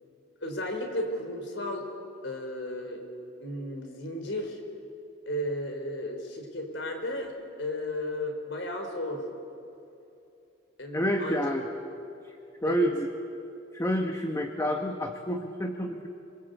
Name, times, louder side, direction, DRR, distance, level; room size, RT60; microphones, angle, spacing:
voice 1, 0.4-1.9 2.2-3.0 3.4-4.6 5.3-9.2 10.8-11.5 12.6-12.9, left 1 dB, 70° left, 4 dB, 4.7 m, -34 dB
voice 2, 10.9-11.7 12.6-13.1 13.7-16.1, equal, 15° left, 4 dB, 1.2 m, -28 dB
26.5 x 24.5 x 8.3 m, 2.8 s
head